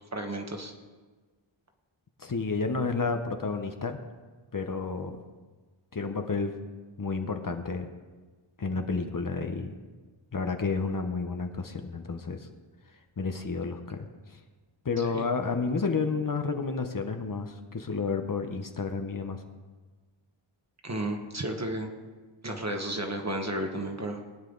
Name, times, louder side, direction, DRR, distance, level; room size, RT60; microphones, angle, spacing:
voice 1, 0.1-0.7 15.0-15.2 20.8-21.9 22.4-24.2, right 1 dB, 35° right, 3 dB, 1.5 m, -33 dB
voice 2, 2.2-4.0 4.5-5.2 5.9-6.5 7.0-7.9 8.6-9.7 10.3-12.5 13.2-14.1 14.3-14.4 14.8-19.4, left 4 dB, 40° left, 6 dB, 0.9 m, -31 dB
20.0 x 9.1 x 3.9 m, 1.4 s
wide cardioid pair, 105°, 49 cm